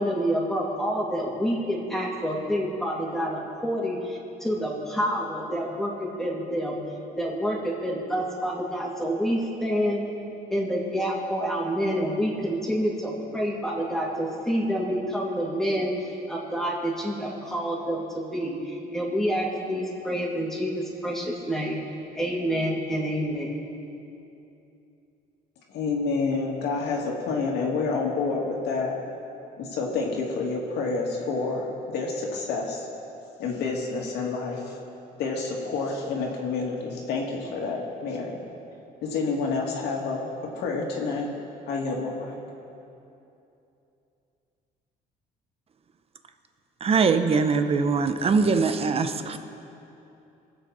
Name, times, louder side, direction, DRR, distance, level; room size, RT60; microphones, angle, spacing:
voice 1, 0.0-6.8 7.2-10.0 10.5-15.9 16.3-21.8 22.1-23.6, equal, ahead, -4 dB, 2.8 m, -28 dB
voice 2, 25.7-29.0 29.6-32.9 33.4-34.7 35.2-38.4 39.0-41.3 41.7-42.4, left 4 dB, 80° left, -1 dB, 2.4 m, -28 dB
voice 3, 46.8-49.4, right 4 dB, 35° right, 8 dB, 0.9 m, -22 dB
22.5 x 7.8 x 4.3 m, 2.8 s
cardioid pair, 110°, 17 cm